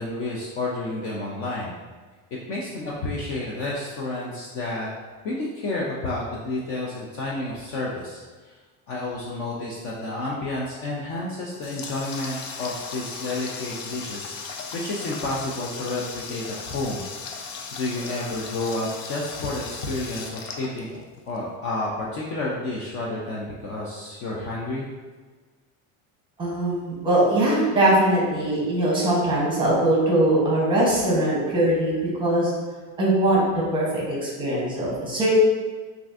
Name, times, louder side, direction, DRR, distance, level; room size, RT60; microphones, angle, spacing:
voice 1, 0.0-1.7 2.5-4.9 5.2-8.6 8.9-14.3 14.7-17.0 17.7-24.9, left 2 dB, 35° left, -4 dB, 0.4 m, -30 dB
Water tap faucet, 11.2-21.4, left 5 dB, 85° left, 0.6 m, -37 dB
voice 2, 26.4-31.9 32.2-32.5 33.0-33.4 33.7-35.4, right 1 dB, 15° right, -6 dB, 0.8 m, -21 dB
5.7 x 2.5 x 2.4 m, 1.4 s
cardioid pair, 170°, 38 cm